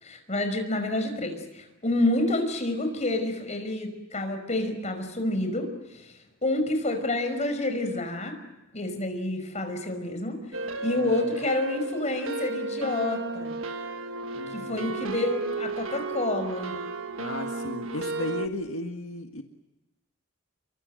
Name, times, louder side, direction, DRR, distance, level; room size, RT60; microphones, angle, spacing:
voice 1, 0.0-8.3 8.7-13.6 14.5-16.7, left 2 dB, 35° left, 6 dB, 5.5 m, -29 dB
sound 1, 10.5-18.5, right 3 dB, 70° right, 1.5 m, -33 dB
voice 2, 14.3-14.9 17.2-19.4, left 1 dB, 80° left, 4 dB, 1.8 m, -35 dB
28.5 x 24.0 x 7.9 m, 1.0 s
head